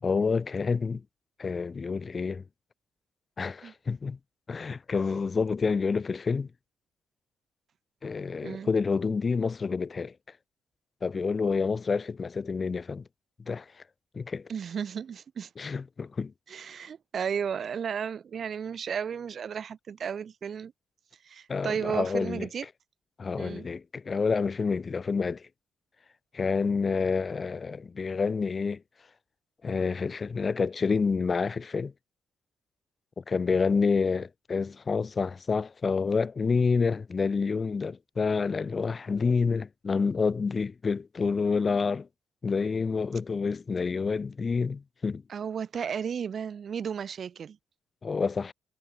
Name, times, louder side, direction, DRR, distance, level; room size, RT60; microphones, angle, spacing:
voice 1, 0.0-1.0 1.4-2.4 3.4-4.2 4.5-6.5 8.0-10.1 11.0-13.0 13.5-13.6 14.1-14.5 15.6-16.3 21.5-22.5 23.2-25.4 26.3-28.8 29.6-31.9 33.2-42.1 42.4-45.2 48.0-48.5, left 5 dB, 35° left, 1.4 m, -28 dB
voice 2, 14.5-15.5 16.5-20.7 21.3-22.7 23.4-23.7 45.3-47.6, right 7 dB, 50° right, 0.6 m, -34 dB
cardioid pair, 90°, 0 cm